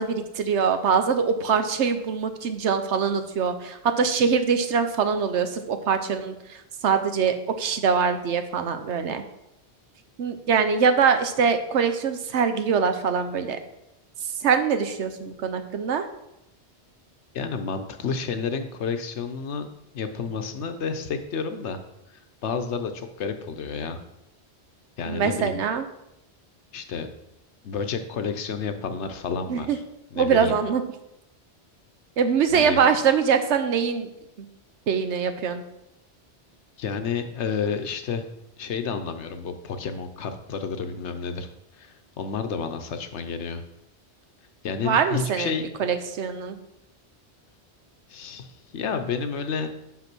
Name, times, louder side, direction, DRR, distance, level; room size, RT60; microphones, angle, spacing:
voice 1, 0.0-9.2 10.2-13.6 14.4-16.0 25.1-25.8 29.5-29.8 30.2-30.8 32.2-34.1 34.4-34.5 34.9-35.6 44.8-46.6, right 6 dB, 85° right, 9 dB, 1.1 m, -23 dB
voice 2, 17.3-19.7 19.9-21.8 22.4-24.0 25.0-25.6 26.7-27.1 27.6-29.8 30.1-30.5 32.5-32.8 36.8-38.2 38.6-41.5 41.8-43.6 44.6-45.7 48.1-49.7, left 5 dB, 85° left, 8 dB, 1.1 m, -30 dB
5.8 x 5.8 x 6.0 m, 0.85 s
omnidirectional pair, 1.1 m